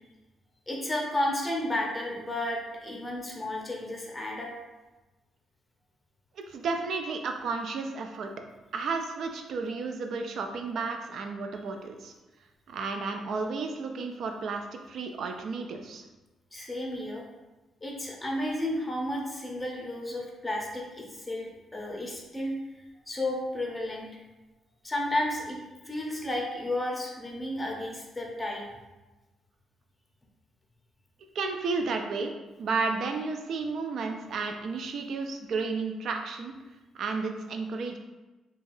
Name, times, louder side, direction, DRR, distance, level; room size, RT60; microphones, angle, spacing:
voice 1, 0.7-4.5 16.5-17.2 17.8-22.5 23.1-24.1 24.8-25.6 25.8-28.6, left 1 dB, 15° left, -1 dB, 0.7 m, -32 dB
voice 2, 6.5-8.3 8.7-12.1 12.7-16.0 31.3-32.3 32.6-36.5 36.9-38.0, right 4 dB, 65° right, 4 dB, 0.3 m, -32 dB
3.2 x 2.4 x 2.6 m, 1.1 s
cardioid pair, 90°, 0 cm